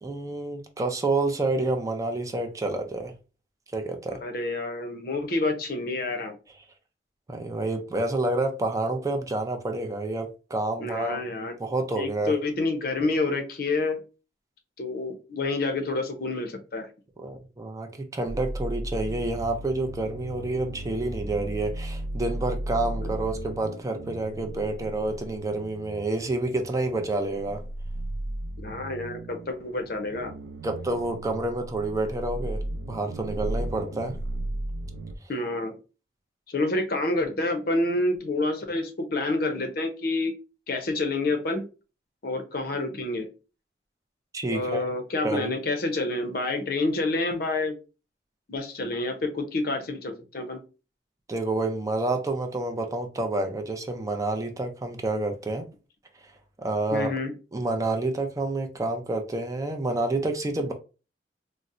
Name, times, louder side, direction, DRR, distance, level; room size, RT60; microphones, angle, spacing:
voice 1, 0.0-3.1 3.7-4.2 7.3-12.3 17.2-27.6 30.6-34.1 44.3-44.9 45.2-45.5 51.3-55.6 56.6-57.1 57.5-60.7, right 2 dB, 20° right, 0.4 m, -29 dB
voice 2, 4.2-6.4 10.8-11.6 12.0-14.0 14.8-16.9 23.0-23.1 28.6-30.3 35.3-35.8 36.5-40.3 40.7-41.6 42.2-43.3 44.5-47.8 48.5-50.6 56.9-57.3, left 2 dB, 55° left, 0.6 m, -28 dB
sound 1, 18.3-35.2, right 1 dB, 85° right, 0.4 m, -35 dB
3.9 x 2.0 x 2.4 m
head